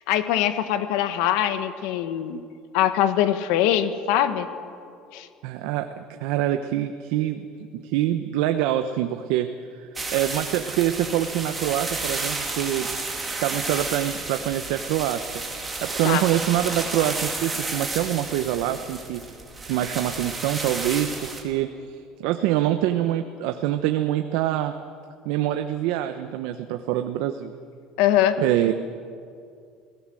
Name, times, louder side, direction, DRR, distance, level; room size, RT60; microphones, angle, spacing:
voice 1, 0.1-2.4 2.7-4.5 5.1-5.3 16.0-16.3 28.0-28.4, left 11 dB, 70° left, 11 dB, 1.4 m, -22 dB
voice 2, 5.4-7.4 7.7-9.5 9.8-12.9 13.4-15.2 15.6-19.2 19.7-24.8 25.2-27.5 28.4-28.7, right 12 dB, 70° right, 8 dB, 0.9 m, -25 dB
sound 1, 10.0-21.4, right 3 dB, 10° right, 2.5 m, -32 dB
29.0 x 17.5 x 7.7 m, 2.4 s
cardioid pair, 170°, 0 cm